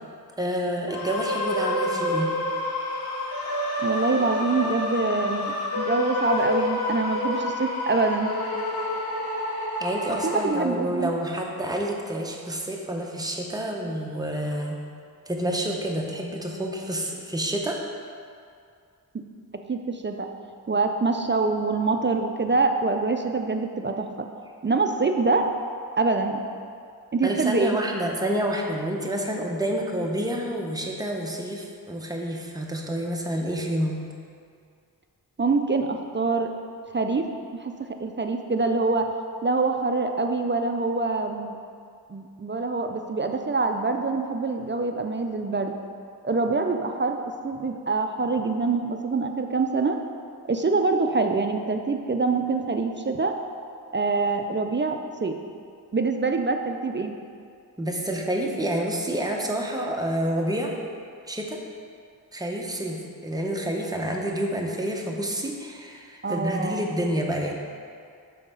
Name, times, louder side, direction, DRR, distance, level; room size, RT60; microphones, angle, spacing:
voice 1, 0.4-2.3 9.8-14.8 15.3-17.8 27.2-34.0 57.8-60.8 61.2-61.6 62.3-67.5, right 1 dB, 10° right, 0 dB, 0.8 m, -28 dB
sound 1, 0.9-10.5, left 1 dB, 80° left, 1.3 m, -28 dB
voice 2, 3.8-8.3 10.2-11.1 19.1-19.2 19.7-20.3 20.7-24.3 24.6-25.5 26.0-26.4 27.1-27.8 35.4-36.5 36.9-39.1 39.4-41.5 42.1-45.8 46.2-50.0 50.5-53.4 53.9-55.4 55.9-57.1 66.2-66.9, right 3 dB, 30° right, 5 dB, 0.4 m, -25 dB
5.7 x 4.0 x 5.5 m, 2.3 s
wide cardioid pair, 55°, 38 cm